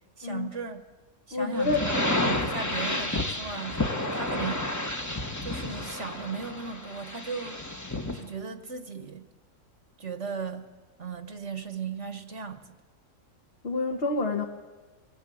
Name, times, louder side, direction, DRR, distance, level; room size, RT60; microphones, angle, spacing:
voice 1, 0.2-0.8 1.3-4.7 5.4-7.6 8.1-9.3 10.0-10.7 11.0-12.7, right 5 dB, 55° right, 8 dB, 1.6 m, -37 dB
voice 2, 1.3-1.9 13.6-14.4, left 3 dB, 45° left, 1 dB, 1.6 m, -27 dB
sound 1, 1.6-8.2, left 1 dB, 15° left, 1.2 m, -30 dB
23.5 x 19.5 x 8.5 m, 1.3 s
omnidirectional pair, 1.5 m